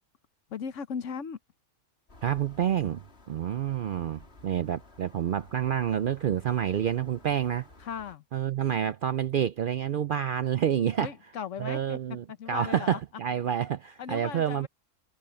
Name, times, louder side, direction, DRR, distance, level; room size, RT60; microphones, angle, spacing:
voice 1, 0.5-1.4 7.8-8.2 11.0-12.0 12.3-13.0 14.0-14.7, left 7 dB, 75° left, 1.3 m, -37 dB
sound 1, 2.1-8.2, left 2 dB, 55° left, 3.2 m, -54 dB
voice 2, 2.2-7.7 8.3-11.1 11.6-14.7, right 9 dB, 65° right, 0.5 m, -28 dB
omnidirectional pair, 1.3 m